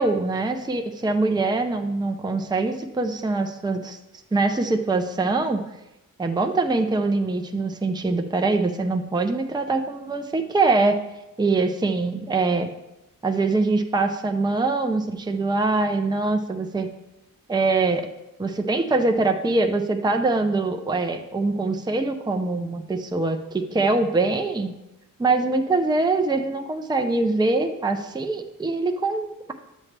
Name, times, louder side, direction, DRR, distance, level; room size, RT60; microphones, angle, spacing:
voice 1, 0.0-4.0 4.3-5.6 6.2-11.0 11.4-12.7 13.2-16.9 17.5-18.1 18.4-24.7 25.2-29.5, right 3 dB, 10° right, 5 dB, 0.5 m, -23 dB
11.0 x 7.3 x 3.3 m, 0.94 s
wide cardioid pair, 120°, 34 cm